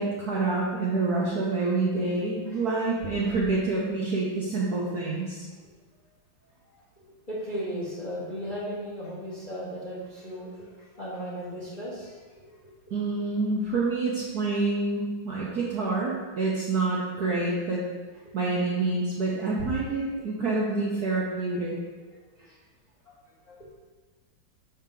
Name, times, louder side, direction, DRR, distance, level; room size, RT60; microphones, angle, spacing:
voice 1, 0.0-5.4 12.9-17.8 18.3-21.7, right 3 dB, 65° right, -5 dB, 1.0 m, -27 dB
voice 2, 7.0-12.2 22.4-22.6 23.5-23.7, equal, 25° left, -7 dB, 1.1 m, -36 dB
5.8 x 4.4 x 3.7 m, 1.3 s
omnidirectional pair, 2.3 m